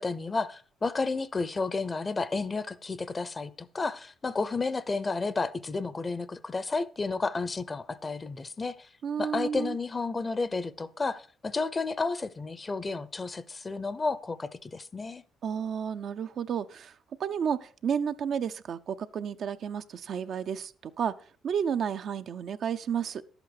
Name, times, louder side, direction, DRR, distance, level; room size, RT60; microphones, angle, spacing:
voice 1, 0.0-8.9 9.2-15.2, left 3 dB, 30° left, 0.7 m, -32 dB
voice 2, 9.0-9.8 15.4-16.9 17.2-21.1 21.4-23.2, right 7 dB, 65° right, 0.6 m, -31 dB
11.5 x 8.2 x 4.9 m
supercardioid pair, 75°, 0 cm